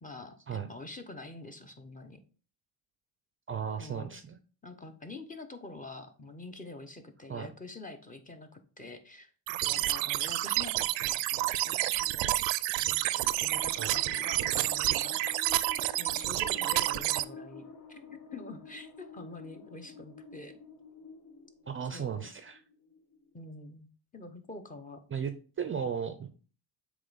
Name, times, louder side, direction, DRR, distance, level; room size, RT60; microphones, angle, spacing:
voice 1, 0.0-2.2 3.8-4.1 4.6-12.3 12.8-15.2 16.0-18.0 18.3-20.6 21.9-22.3 23.3-25.0, left 2 dB, 20° left, 7 dB, 0.8 m, -46 dB
voice 2, 3.5-4.4 7.3-7.5 13.8-14.0 21.7-22.6 25.1-25.3 25.6-26.3, right 7 dB, 30° right, 9 dB, 0.5 m, -35 dB
sound 1, 9.5-17.2, right 16 dB, 85° right, 0.5 m, -29 dB
sound 2, 13.0-23.7, left 4 dB, 65° left, 1.2 m, -50 dB
7.6 x 3.1 x 4.0 m, 0.38 s
cardioid pair, 105°, 44 cm